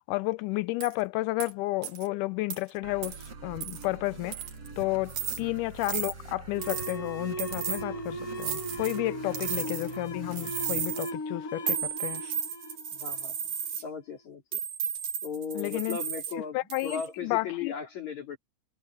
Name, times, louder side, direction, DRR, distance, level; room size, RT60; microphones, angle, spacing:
voice 1, 0.1-4.4 4.8-12.3 15.6-16.0 16.5-17.7, left 19 dB, 90° left, 2.1 m, -32 dB
sound 1, 0.8-0.9 1.4-1.5 1.8-2.1 2.5-2.6 3.0-3.3 3.6-3.9 4.3-4.7 5.1-5.4 5.8-6.1 6.6-7.0 7.4-7.8 8.4-9.0 9.3-10.0 10.3-11.1 11.7-13.8 14.5-16.3 16.7-17.1, right 8 dB, 80° right, 3.9 m, -34 dB
sound 2, 2.8-10.8, right 4 dB, 50° right, 5.5 m, -45 dB
sound 3, 6.5-13.7, equal, 45° left, 1.3 m, -38 dB
voice 2, 13.0-13.4 13.8-14.6 15.2-18.4, left 6 dB, 65° left, 4.5 m, -37 dB
omnidirectional pair, 3.6 m